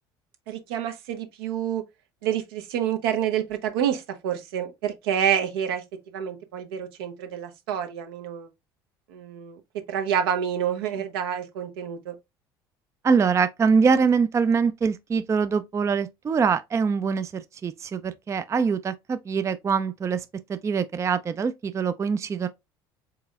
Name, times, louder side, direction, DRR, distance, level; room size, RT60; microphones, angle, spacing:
voice 1, 0.5-1.8 2.2-5.8 6.1-8.5 9.1-9.6 9.9-12.1, right 9 dB, 70° right, 0.8 m, -28 dB
voice 2, 13.0-17.3 17.6-20.2 20.5-22.5, right 5 dB, 25° right, 0.4 m, -23 dB
4.7 x 3.9 x 2.2 m
hypercardioid pair, 65°, 13 cm